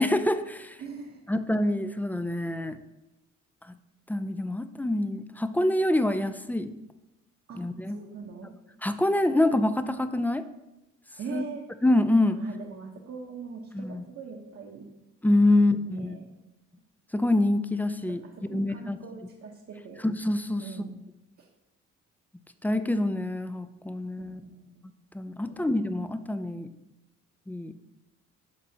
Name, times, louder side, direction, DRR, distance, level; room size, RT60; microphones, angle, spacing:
voice 1, 0.0-0.8 1.3-2.8 4.1-6.7 7.6-8.0 8.8-10.4 11.3-11.4 11.8-12.4 13.7-14.0 15.2-16.1 17.1-18.2 18.5-19.0 20.0-20.6 22.6-24.4 25.1-26.7 27.5-27.7, left 1 dB, 5° left, 11 dB, 0.3 m, -26 dB
voice 2, 0.8-1.2 7.5-8.5 11.2-11.7 12.3-14.8 15.5-16.3 18.1-20.0 20.6-20.9 21.4-21.5 24.2-24.8 25.5-25.7, right 5 dB, 55° right, -1 dB, 1.0 m, -42 dB
11.5 x 4.2 x 2.8 m, 0.94 s
cardioid pair, 90°, 30 cm